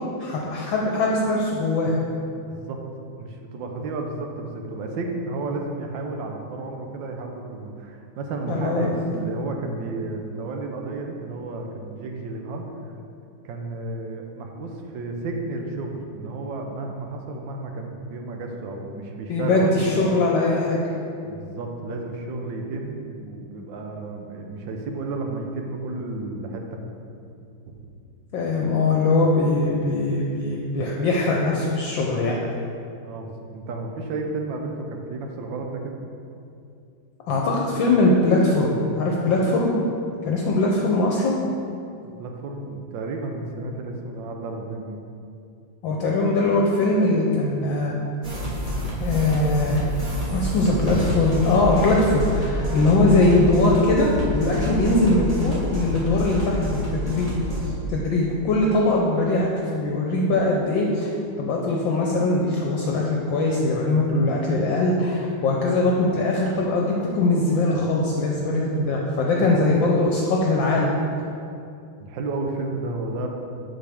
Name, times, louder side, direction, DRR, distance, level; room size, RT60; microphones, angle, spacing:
voice 1, 0.2-2.0 8.5-9.2 19.3-20.9 28.3-32.4 37.3-39.7 40.2-41.4 45.8-47.9 49.0-49.8 50.3-57.3 57.9-61.1 61.4-70.9, left 2 dB, 70° left, -2 dB, 1.3 m, -21 dB
voice 2, 2.4-2.8 3.1-12.6 13.4-19.9 21.3-26.9 27.7-27.8 33.0-36.0 42.0-45.0 69.4-69.5 72.0-73.3, right 3 dB, 70° right, 3 dB, 1.4 m, -32 dB
sound 1, 48.2-57.7, equal, 20° right, 1.2 m, -28 dB
7.6 x 6.4 x 3.5 m, 2.5 s
omnidirectional pair, 2.3 m